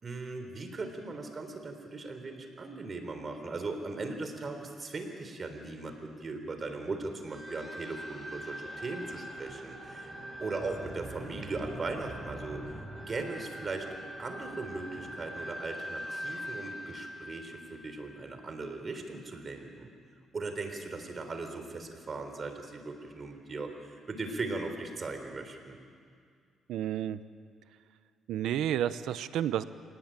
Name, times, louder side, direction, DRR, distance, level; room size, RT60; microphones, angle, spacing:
voice 1, 0.0-10.1 10.4-12.8 13.1-19.9 20.3-25.8, right 3 dB, 40° right, 6 dB, 3.8 m, -38 dB
sound 1, 7.3-18.5, equal, 10° right, 6.3 m, -43 dB
voice 2, 26.7-27.2 28.3-29.6, right 11 dB, 85° right, 14 dB, 0.9 m, -30 dB
26.5 x 19.0 x 9.1 m, 2.1 s
cardioid pair, 90°, 0 cm